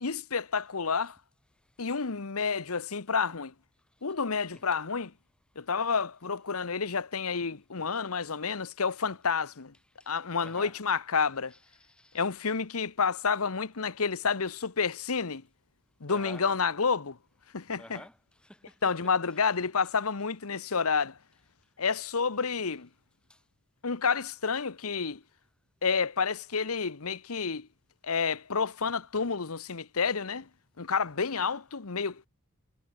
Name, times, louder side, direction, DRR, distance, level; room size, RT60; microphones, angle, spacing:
voice 1, 0.0-1.2 1.8-3.5 4.0-5.1 5.6-9.7 10.1-11.5 12.1-15.4 16.0-17.2 17.5-18.0 18.8-21.2 21.8-22.9 23.8-25.2 25.8-27.7 28.0-30.5 30.8-32.3, left 5 dB, 80° left, 1.1 m, -29 dB
voice 2, 10.4-10.8 11.5-12.2 16.1-16.5 17.8-19.5 23.3-23.4, left 1 dB, 5° left, 3.3 m, -51 dB
head